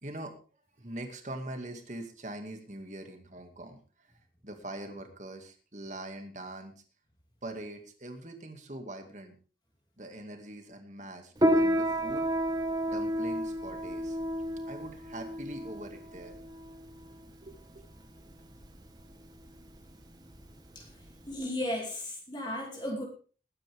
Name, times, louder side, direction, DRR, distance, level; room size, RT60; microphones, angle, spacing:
voice 1, 0.0-0.4 0.8-6.7 7.4-9.4 10.0-12.3 12.9-14.2 14.7-16.4 17.4-17.9, right 1 dB, 40° right, 5 dB, 2.3 m, -43 dB
Piano, 11.4-21.3, equal, 20° right, 1.6 m, -31 dB
voice 2, 21.3-23.0, left 1 dB, 25° left, 0 dB, 2.8 m, -35 dB
20.5 x 9.7 x 3.6 m, 0.38 s
head